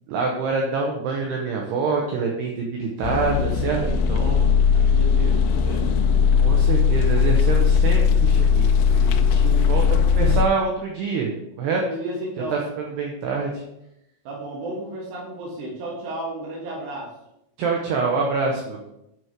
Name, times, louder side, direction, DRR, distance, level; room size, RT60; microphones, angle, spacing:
voice 1, 0.1-3.8 4.1-4.4 4.8-5.0 5.2-5.3 6.4-11.3 11.6-11.8 12.5-13.6 17.6-18.9, right 4 dB, 90° right, 0 dB, 2.4 m, -26 dB
sound 1, 3.0-10.5, left 6 dB, 90° left, 2.6 m, -18 dB
voice 2, 3.7-4.1 4.7-6.4 11.8-12.6 14.2-17.1, right 1 dB, 65° right, -4 dB, 2.5 m, -33 dB
9.1 x 4.9 x 4.6 m, 0.84 s
omnidirectional pair, 5.9 m